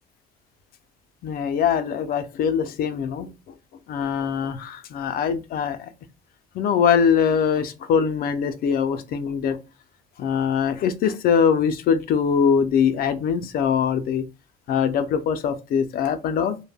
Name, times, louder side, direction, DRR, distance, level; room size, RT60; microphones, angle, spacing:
voice 1, 1.2-3.6 3.9-5.9 6.5-9.6 10.2-14.3 14.7-16.6, left 7 dB, 60° left, 0.4 m, -22 dB
2.1 x 2.1 x 3.4 m
cardioid pair, 110°, 17 cm